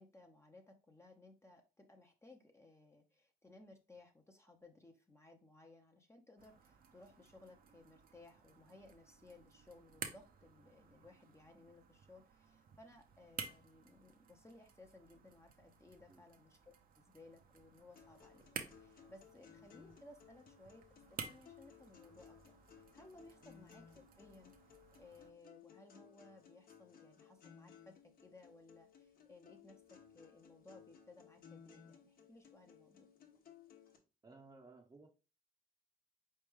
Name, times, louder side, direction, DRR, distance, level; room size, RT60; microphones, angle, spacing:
voice 1, 0.0-20.8 21.1-24.5 25.0-33.1, left 2 dB, 15° left, 0.7 m, -61 dB
sound 1, 6.4-25.3, right 6 dB, 65° right, 0.7 m, -54 dB
sound 2, 18.0-34.0, left 7 dB, 65° left, 1.1 m, -61 dB
voice 2, 34.2-35.1, right 3 dB, 25° right, 0.7 m, -59 dB
4.3 x 3.2 x 3.5 m
cardioid pair, 75°, 16 cm